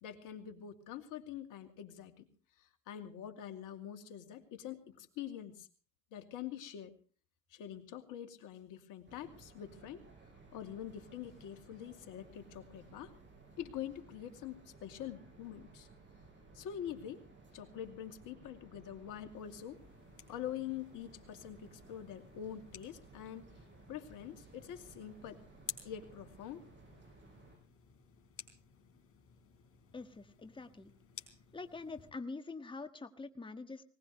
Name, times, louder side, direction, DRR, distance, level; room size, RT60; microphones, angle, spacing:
voice 1, 0.0-2.3 2.6-5.7 6.1-6.9 7.5-10.1 10.5-13.1 13.6-15.9 16.5-17.2 17.5-19.8 20.3-23.5 23.9-25.4 25.8-26.7, left 10 dB, 55° left, 6 dB, 2.7 m, -45 dB
sound 1, 9.1-27.6, right 3 dB, 30° right, 7.1 m, -59 dB
sound 2, 19.7-32.1, left 8 dB, 40° left, 4.1 m, -54 dB
voice 2, 29.9-30.9 31.5-33.8, left 3 dB, 15° left, 9 dB, 1.6 m, -45 dB
21.0 x 19.0 x 3.2 m, 0.39 s
supercardioid pair, 90°, 36 cm